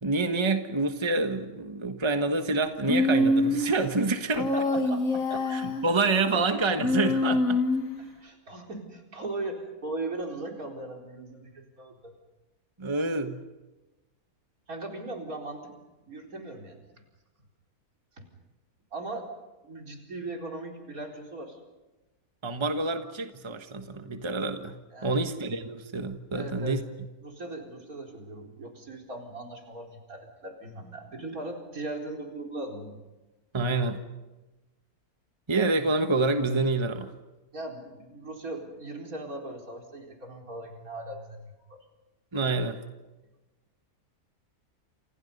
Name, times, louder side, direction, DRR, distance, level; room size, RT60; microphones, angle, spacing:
voice 1, 0.0-4.5 5.5-7.6 12.8-13.4 22.4-24.8 25.0-26.8 33.5-34.0 35.5-37.1 42.3-42.8, right 3 dB, 20° right, 7 dB, 1.3 m, -27 dB
Human voice, 2.9-3.8 4.3-5.9 6.8-8.0, left 2 dB, 65° left, 2.3 m, -25 dB
voice 2, 4.5-5.6 6.3-6.4 8.0-12.1 14.7-15.7 16.1-16.8 18.2-18.3 18.9-19.3 19.6-21.6 24.9-25.2 26.3-26.8 27.2-33.0 37.5-41.8, right 2 dB, 70° right, 1 dB, 4.7 m, -39 dB
29.0 x 28.0 x 5.5 m, 1.1 s
omnidirectional pair, 1.6 m